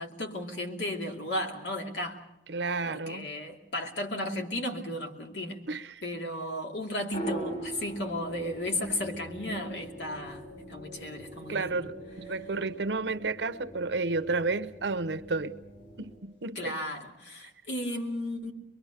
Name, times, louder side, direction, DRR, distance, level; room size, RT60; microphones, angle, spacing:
voice 1, 0.0-2.2 2.9-5.6 6.0-11.8 16.5-18.5, left 1 dB, 90° left, 2.6 m, -34 dB
voice 2, 2.5-3.3 5.7-6.0 11.5-15.6 16.0-16.8, right 3 dB, 85° right, 0.9 m, -31 dB
sound 1, 7.1-16.2, equal, 50° left, 7.2 m, -42 dB
23.5 x 23.0 x 6.7 m
head